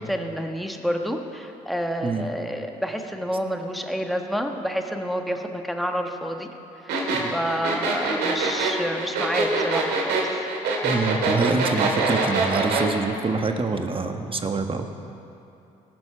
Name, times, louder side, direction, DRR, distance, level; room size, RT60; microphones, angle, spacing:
voice 1, 0.0-6.5 6.8-10.2, equal, ahead, 4 dB, 1.3 m, -29 dB
sound 1, 6.9-12.9, right 4 dB, 75° right, 2.0 m, -24 dB
voice 2, 10.8-14.9, right 3 dB, 30° right, 6 dB, 1.2 m, -26 dB
18.5 x 7.0 x 5.0 m, 2.9 s
supercardioid pair, 60°, 17 cm